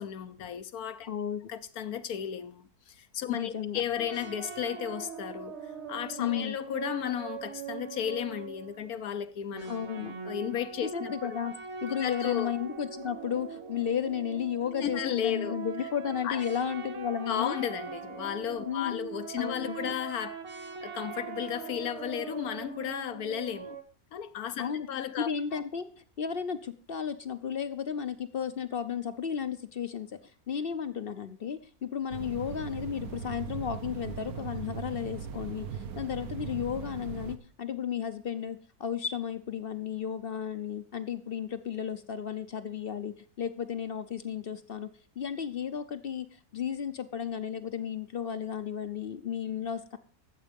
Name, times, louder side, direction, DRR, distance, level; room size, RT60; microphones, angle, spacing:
voice 1, 0.0-1.1 1.5-9.7 10.2-11.4 12.0-12.5 14.8-15.5 16.2-16.4 17.3-20.4 20.8-23.8 24.1-25.3, left 9 dB, 75° left, 1.3 m, -34 dB
voice 2, 1.1-1.5 3.3-3.8 6.2-6.6 9.7-10.2 10.8-11.5 11.8-17.6 18.7-19.0 19.4-19.8 24.6-24.9 25.2-30.1 30.5-44.9 45.2-46.3 46.5-50.0, left 8 dB, 50° left, 0.7 m, -33 dB
sound 1, 4.0-9.0 9.5-23.8, right 6 dB, 50° right, 1.5 m, -41 dB
sound 2, 32.1-37.4, right 7 dB, 70° right, 1.4 m, -39 dB
13.5 x 7.5 x 5.2 m
omnidirectional pair, 1.6 m